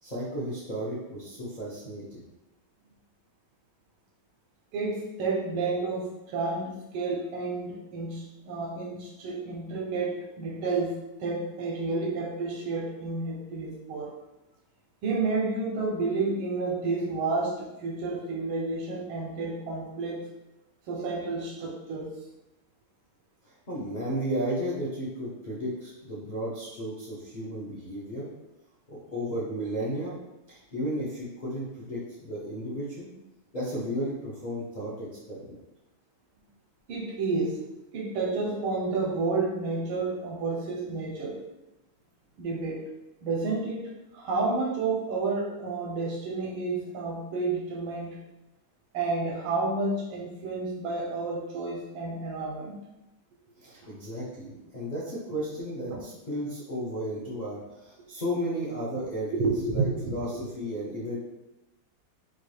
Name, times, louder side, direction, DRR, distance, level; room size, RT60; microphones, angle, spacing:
voice 1, 0.0-2.3 23.4-28.3 28.9-30.2 30.5-33.1 33.5-35.6 53.6-61.2, equal, 80° left, -7 dB, 0.4 m, -34 dB
voice 2, 4.7-14.1 15.0-20.2 20.9-22.1 36.9-37.6 37.9-41.4 42.4-42.8 43.2-48.2 48.9-52.8 53.8-53.9 55.9-56.0 59.3-60.5, right 3 dB, 85° right, 0 dB, 1.7 m, -30 dB
5.7 x 2.2 x 3.2 m, 0.95 s
omnidirectional pair, 2.2 m